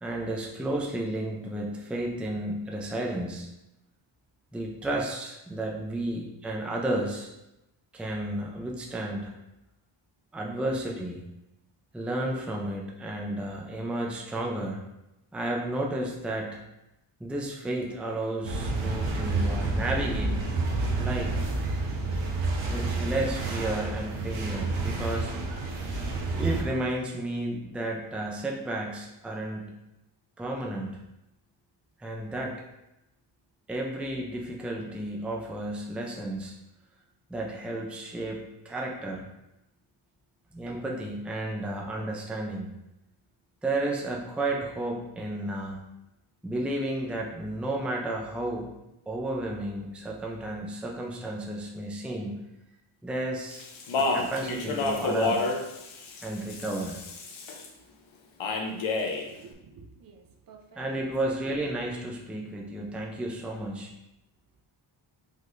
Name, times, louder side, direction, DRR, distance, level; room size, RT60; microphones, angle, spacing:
voice 1, 0.0-3.5 4.5-7.3 7.9-9.3 10.3-11.2 11.9-14.8 15.3-16.6 17.2-20.5 21.0-21.5 22.7-25.3 26.3-29.7 30.4-31.0 32.0-32.6 33.7-36.5 37.3-39.3 40.5-42.7 43.6-45.8 46.4-48.7 49.1-52.4 53.0-53.6 53.9-55.4 56.2-57.0 60.8-63.9, right 1 dB, ahead, -1 dB, 0.5 m, -32 dB
sound 1, 18.4-26.6, right 3 dB, 70° right, 1.1 m, -29 dB
Speech, 53.5-57.7 58.4-59.3, left 3 dB, 65° left, 0.9 m, -29 dB
voice 2, 59.2-61.1, right 5 dB, 45° right, 3 dB, 0.7 m, -52 dB
5.2 x 4.0 x 2.6 m, 0.92 s
cardioid pair, 110°, 49 cm